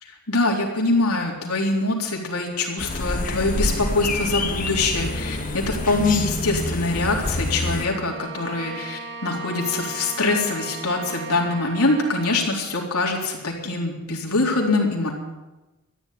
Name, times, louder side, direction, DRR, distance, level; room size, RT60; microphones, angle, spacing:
voice 1, 0.0-15.1, left 2 dB, 80° left, 0 dB, 3.8 m, -24 dB
sound 1, 2.8-7.9, left 2 dB, 35° left, 1.3 m, -27 dB
Bowed string instrument, 7.7-12.6, right 4 dB, 50° right, 1.9 m, -37 dB
14.0 x 11.0 x 9.4 m, 1.1 s
head